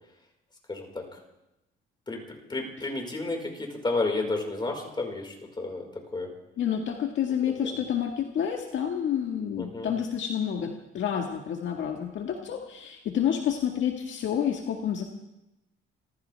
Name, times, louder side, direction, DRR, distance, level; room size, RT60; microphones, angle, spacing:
voice 1, 0.7-1.2 2.1-5.8 6.1-6.3 9.6-9.9, left 2 dB, 25° left, 1 dB, 4.9 m, -31 dB
voice 2, 6.6-15.0, left 9 dB, 70° left, 2 dB, 1.8 m, -29 dB
27.5 x 15.5 x 3.5 m, 0.88 s
cardioid pair, 90°, 20 cm